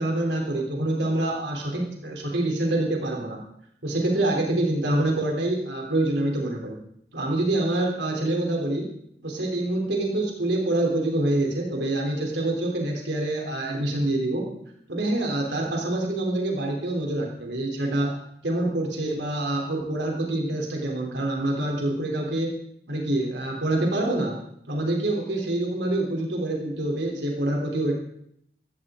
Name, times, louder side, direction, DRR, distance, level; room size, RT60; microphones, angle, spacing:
voice 1, 0.0-3.4 3.8-6.8 7.1-8.9 9.2-14.5 14.9-18.2 18.4-22.5 22.9-24.4 24.7-27.9, right 1 dB, 90° right, 0 dB, 3.4 m, -26 dB
16.0 x 14.5 x 3.8 m, 0.71 s
head